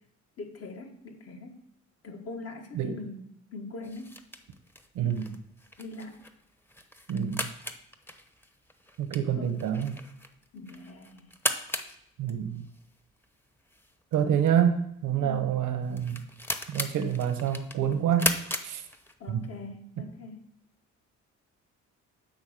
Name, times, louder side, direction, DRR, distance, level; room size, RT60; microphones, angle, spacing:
voice 1, 0.4-1.6 2.0-4.2 5.8-6.2 9.3-9.6 10.5-11.3 15.2-15.5 19.2-20.5, left 3 dB, 55° left, 3 dB, 1.7 m, -42 dB
sound 1, 3.8-19.5, left 1 dB, 5° left, 0.9 m, -38 dB
voice 2, 4.9-5.3 7.1-7.4 9.0-10.0 12.2-12.6 14.1-16.2 16.7-18.4 18.6-18.8 19.3-19.4, right 8 dB, 85° right, 8 dB, 1.1 m, -27 dB
8.1 x 5.3 x 6.9 m, 0.76 s
cardioid pair, 90°, 30 cm